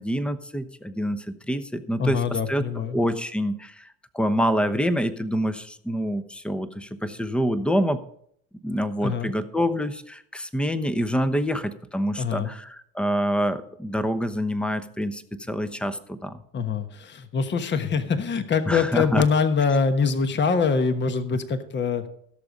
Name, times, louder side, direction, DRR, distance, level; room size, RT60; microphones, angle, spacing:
voice 1, 0.0-3.9 4.1-8.0 8.6-15.2 15.5-16.4 18.7-19.2, equal, 5° left, 12 dB, 0.9 m, -26 dB
voice 2, 2.0-3.0 9.0-9.3 12.2-12.5 16.5-22.1, left 5 dB, 30° left, 9 dB, 1.2 m, -24 dB
16.0 x 7.0 x 5.1 m, 0.68 s
supercardioid pair, 90°, 36 cm